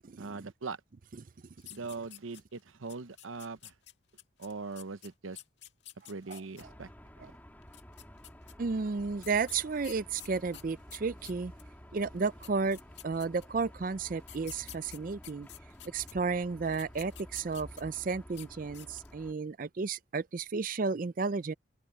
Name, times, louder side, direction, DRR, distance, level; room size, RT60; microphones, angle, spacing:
voice 1, 0.2-0.8 1.7-3.7 4.4-5.4 6.1-6.9 7.2-7.3, right 4 dB, 90° right, 0.8 m, -41 dB
sound 1, 1.6-2.6 2.9-6.6 7.6-8.5 9.2-11.7 12.2-12.3 12.4-13.6 14.2-16.1 16.6-18.0 18.3-18.5 18.7-19.2, left 13 dB, 60° left, 1.9 m, -50 dB
sound 2, 6.6-19.3, equal, 10° left, 2.7 m, -52 dB
voice 2, 8.6-11.5 11.9-12.8 13.0-15.5 15.9-21.5, right 4 dB, 45° right, 0.4 m, -32 dB
head